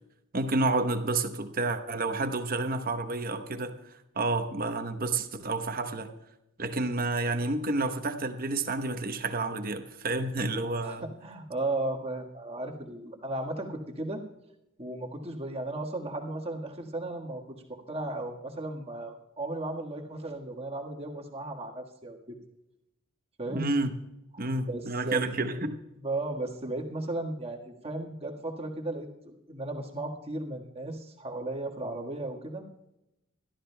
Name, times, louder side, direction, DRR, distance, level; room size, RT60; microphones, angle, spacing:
voice 1, 0.3-6.1 6.6-11.0 23.5-23.9 24.4-25.8, right 2 dB, 45° right, 8 dB, 1.0 m, -30 dB
voice 2, 10.8-14.2 14.8-22.4 23.4-23.7 24.4-25.2 26.0-32.7, right 2 dB, 30° right, 1 dB, 1.6 m, -35 dB
22.0 x 13.0 x 2.3 m, 0.89 s
head